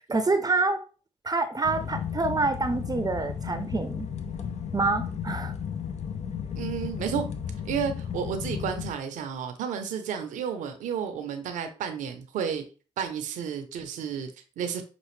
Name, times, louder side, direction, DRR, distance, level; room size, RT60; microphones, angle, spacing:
voice 1, 0.1-0.8 1.2-4.1 4.7-5.5, right 3 dB, 30° right, 8 dB, 0.6 m, -26 dB
sound 1, 1.6-8.9, left 8 dB, 60° left, 0.7 m, -34 dB
voice 2, 6.6-7.3 7.6-12.6 13.0-14.8, right 7 dB, 85° right, 7 dB, 0.7 m, -32 dB
5.9 x 2.5 x 3.2 m, 0.36 s
supercardioid pair, 50°, 13 cm